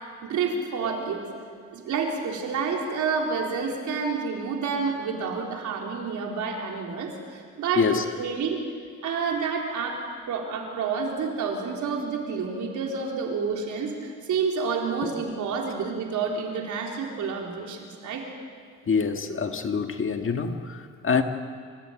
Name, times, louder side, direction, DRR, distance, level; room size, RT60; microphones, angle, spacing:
voice 1, 0.2-1.3 1.7-7.8 8.2-8.6 9.0-10.0 10.3-18.3, right 5 dB, 75° right, 0 dB, 4.0 m, -29 dB
voice 2, 18.9-21.2, left 5 dB, 45° left, 5 dB, 1.9 m, -25 dB
26.0 x 15.0 x 8.9 m, 2.1 s
cardioid pair, 90°, 30 cm